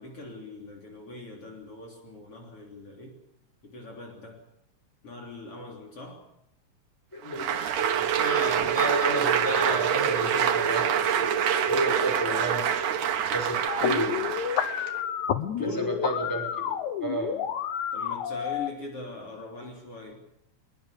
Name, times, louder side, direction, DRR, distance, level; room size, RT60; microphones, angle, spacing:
voice 1, 0.0-3.2 3.6-4.4 5.0-6.3 15.4-16.0 17.9-20.3, left 2 dB, 50° left, 1 dB, 4.3 m, -41 dB
voice 2, 7.1-7.6 7.9-12.7 13.3-14.2 15.6-16.6 17.0-17.4, equal, 5° left, 2 dB, 5.5 m, -31 dB
Applause, 7.2-15.0, right 9 dB, 85° right, 2.9 m, -27 dB
sound 1, 7.8-16.1, right 8 dB, 50° right, 2.2 m, -32 dB
sound 2, 13.7-18.7, left 9 dB, 80° left, 2.5 m, -30 dB
23.0 x 22.5 x 6.7 m, 0.76 s
omnidirectional pair, 3.4 m